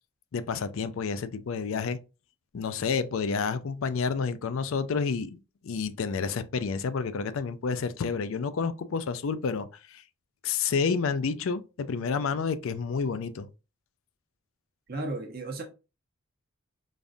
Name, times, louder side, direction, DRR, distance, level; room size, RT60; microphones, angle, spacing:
voice 1, 0.3-2.0 2.5-5.4 5.6-10.0 10.4-13.5, left 5 dB, 75° left, 0.4 m, -29 dB
voice 2, 14.9-15.6, right 2 dB, 45° right, 0.9 m, -34 dB
5.2 x 2.4 x 2.6 m
head